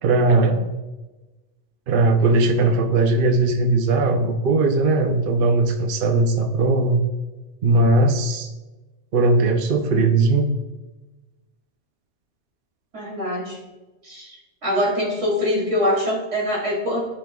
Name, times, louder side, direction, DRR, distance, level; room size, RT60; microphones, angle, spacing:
voice 1, 0.0-0.7 1.9-7.0 7.6-8.5 9.1-10.5, right 2 dB, 55° right, 5 dB, 0.7 m, -19 dB
voice 2, 12.9-13.6 14.0-14.4 14.6-17.1, left 1 dB, 85° right, -4 dB, 3.1 m, -23 dB
14.0 x 5.2 x 2.3 m, 1.1 s
omnidirectional pair, 1.2 m